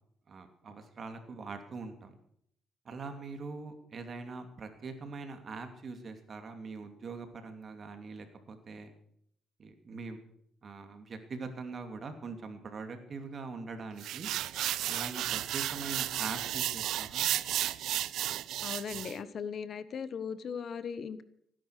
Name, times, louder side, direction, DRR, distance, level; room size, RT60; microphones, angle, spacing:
voice 1, 0.3-2.2 2.8-8.9 9.6-10.2 10.6-14.3 14.8-17.3, right 4 dB, 45° right, 7 dB, 2.8 m, -42 dB
sound 1, 14.0-19.2, right 13 dB, 80° right, 0.5 m, -33 dB
voice 2, 18.6-21.2, left 6 dB, 55° left, 15 dB, 1.1 m, -38 dB
17.0 x 10.0 x 6.6 m, 0.70 s
cardioid pair, 90°, 0 cm